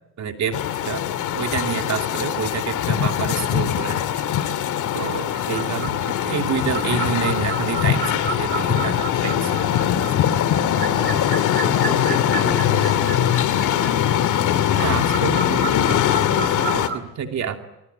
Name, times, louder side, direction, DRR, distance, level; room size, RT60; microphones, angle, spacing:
voice 1, 0.2-0.6 0.8-1.0 1.3-4.1 4.9-9.8 14.7-16.0 16.4-17.6, right 7 dB, 65° right, 4 dB, 2.9 m, -28 dB
sound 1, 0.5-16.9, left 10 dB, 80° left, 2.3 m, -21 dB
sound 2, 5.3-17.0, right 6 dB, 35° right, 1.4 m, -33 dB
voice 2, 10.7-13.3, equal, ahead, 4 dB, 2.6 m, -34 dB
24.5 x 23.5 x 9.7 m, 0.91 s
cardioid pair, 90°, 30 cm